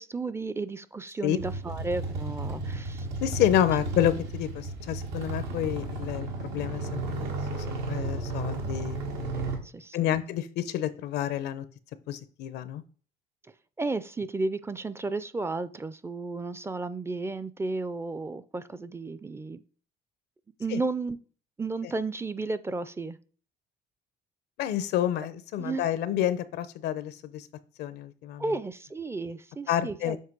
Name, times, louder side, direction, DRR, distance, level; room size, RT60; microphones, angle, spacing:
voice 1, 0.0-3.1 9.3-10.0 13.8-19.6 20.6-21.2 21.6-23.2 25.6-25.9 28.4-30.2, right 3 dB, 15° right, 15 dB, 0.4 m, -33 dB
sound 1, 1.4-9.6, right 2 dB, 90° right, 1.6 m, -33 dB
voice 2, 3.2-9.0 9.9-11.7 12.1-12.8 20.7-20.8 24.6-27.5 27.8-28.4 29.7-30.2, left 11 dB, 80° left, 14 dB, 0.6 m, -29 dB
7.4 x 2.9 x 6.0 m, 0.42 s
cardioid pair, 110°, 17 cm